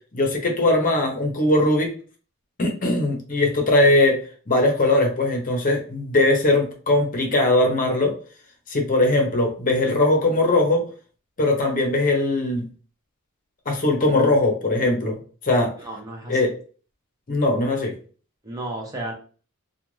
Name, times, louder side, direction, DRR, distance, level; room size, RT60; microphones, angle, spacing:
voice 1, 0.1-1.9 2.6-4.2 4.5-8.1 8.7-10.8 11.4-12.6 13.7-15.2 15.4-15.7 16.3-16.5 17.3-18.0, left 2 dB, 40° left, 2 dB, 0.7 m, -20 dB
voice 2, 15.8-16.4 18.4-19.1, right 1 dB, 15° right, 0 dB, 0.5 m, -33 dB
2.4 x 2.2 x 3.0 m, 0.40 s
head